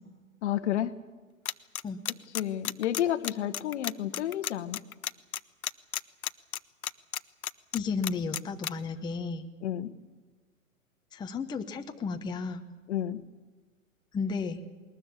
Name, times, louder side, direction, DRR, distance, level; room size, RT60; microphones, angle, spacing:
voice 1, 0.4-0.9 2.3-4.8 9.6-9.9 12.9-13.2, left 11 dB, 55° left, 13 dB, 1.2 m, -30 dB
sound 1, 1.5-8.7, left 10 dB, 80° left, 0.7 m, -32 dB
voice 2, 7.7-9.5 11.1-12.6 14.1-14.6, left 4 dB, 10° left, 5 dB, 0.9 m, -33 dB
20.5 x 19.5 x 8.5 m, 1.3 s
figure-of-eight pair, 115°, 42 cm